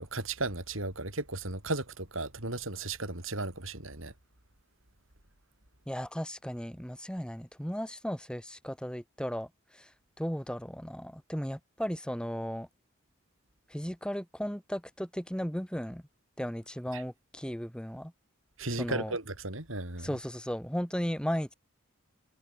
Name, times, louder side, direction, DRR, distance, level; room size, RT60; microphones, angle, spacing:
voice 1, 0.0-4.1 16.9-17.0 18.6-20.1, right 2 dB, 70° right, 5.4 m, -35 dB
voice 2, 5.9-9.9 10.2-12.7 13.7-16.0 16.4-18.1 18.8-19.2 20.0-21.5, equal, 5° left, 4.3 m, -35 dB
head